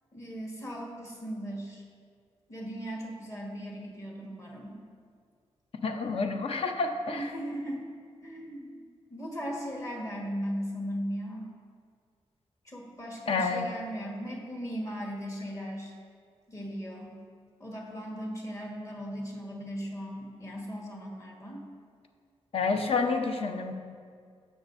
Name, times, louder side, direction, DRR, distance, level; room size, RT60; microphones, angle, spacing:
voice 1, 0.1-1.8 2.5-4.8 7.1-8.0 8.2-11.5 12.6-16.0 16.5-17.2 17.6-21.6, equal, 30° left, -1 dB, 1.4 m, -38 dB
voice 2, 5.8-7.3 13.3-13.7 22.5-23.7, left 4 dB, 55° left, 5 dB, 0.7 m, -29 dB
16.5 x 6.3 x 2.6 m, 2.1 s
wide cardioid pair, 155°, 11 cm